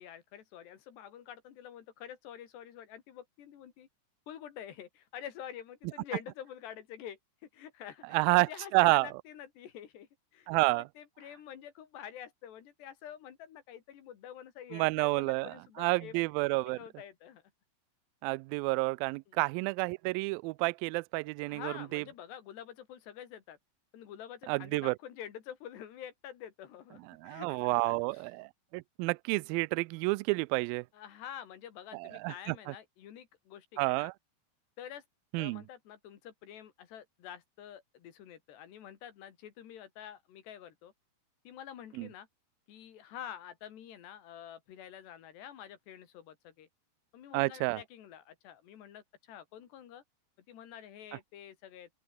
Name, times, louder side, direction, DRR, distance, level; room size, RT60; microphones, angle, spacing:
voice 1, 0.0-3.9 4.3-7.2 7.5-16.2 16.7-17.4 19.3-19.4 21.5-23.6 23.9-28.2 30.9-34.1 34.8-35.0 35.4-40.9 41.5-42.3 42.7-46.7 47.1-50.0 50.5-51.9, left 10 dB, 90° left, 4.6 m, -48 dB
voice 2, 8.1-9.1 10.5-10.9 14.7-16.8 18.2-22.0 24.5-25.0 27.2-30.9 31.9-32.7 33.8-34.1 35.3-35.6 42.0-42.1 47.3-47.8, right 25 dB, 85° right, 2.1 m, -30 dB
open air
omnidirectional pair, 4.7 m